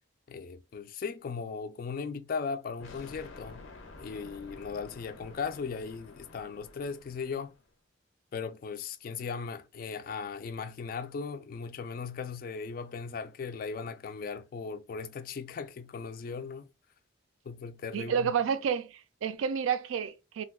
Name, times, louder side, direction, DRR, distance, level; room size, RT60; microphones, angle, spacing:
voice 1, 0.3-3.7 4.0-7.5 8.3-16.7 17.5-18.3, left 5 dB, 45° left, 0.3 m, -38 dB
sound 1, 2.8-7.7, left 3 dB, 85° left, 0.7 m, -50 dB
voice 2, 17.9-20.4, right 7 dB, 85° right, 0.3 m, -30 dB
2.4 x 2.2 x 3.5 m
head